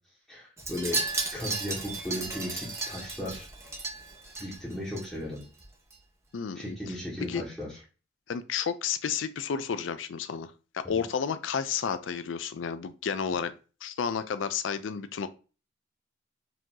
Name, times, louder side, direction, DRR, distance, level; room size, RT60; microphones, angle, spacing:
voice 1, 0.3-1.0 1.3-3.5 4.4-5.4 6.5-7.8 10.8-11.0, left 1 dB, ahead, -8 dB, 1.4 m, -36 dB
Wind chime, 0.6-5.1 5.4-5.6 5.9-6.0, right 3 dB, 15° right, 1.1 m, -34 dB
voice 2, 6.3-6.8 7.3-7.4 8.3-13.5 13.8-15.3, left 6 dB, 80° left, 12 dB, 0.4 m, -31 dB
4.9 x 2.9 x 3.7 m, 0.34 s
head